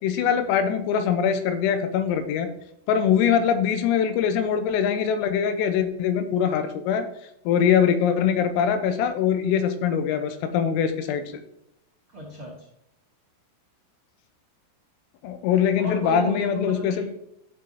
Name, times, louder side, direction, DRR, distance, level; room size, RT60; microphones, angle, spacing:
voice 1, 0.0-2.5 2.9-7.1 7.5-11.2 15.2-17.0, left 8 dB, 90° left, 8 dB, 3.6 m, -22 dB
voice 2, 12.1-12.6 15.8-17.1, right 1 dB, 65° right, -4 dB, 1.2 m, -34 dB
12.0 x 7.9 x 2.8 m, 0.78 s
omnidirectional pair, 5.9 m